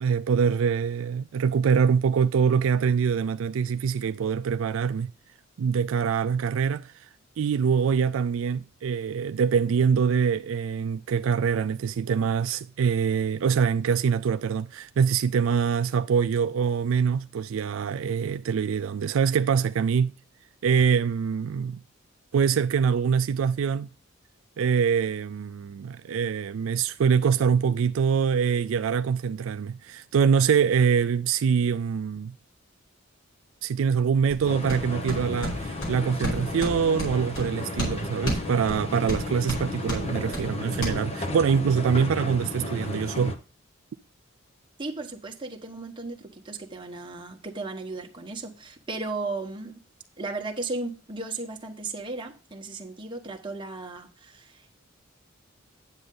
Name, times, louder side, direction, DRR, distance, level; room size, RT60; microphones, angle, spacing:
voice 1, 0.0-5.1 5.6-6.9 7.4-20.1 20.6-21.8 22.3-23.9 24.6-32.3 33.6-43.4, right 6 dB, 70° right, 0.3 m, -24 dB
sound 1, 34.3-40.9, equal, 75° left, 4.8 m, -34 dB
Sonicsnaps-OM-FR-escalateur metro, 34.4-43.3, left 2 dB, 30° left, 1.1 m, -34 dB
voice 2, 44.8-49.8 50.2-54.8, right 3 dB, 25° right, 1.2 m, -35 dB
9.6 x 7.6 x 3.8 m
head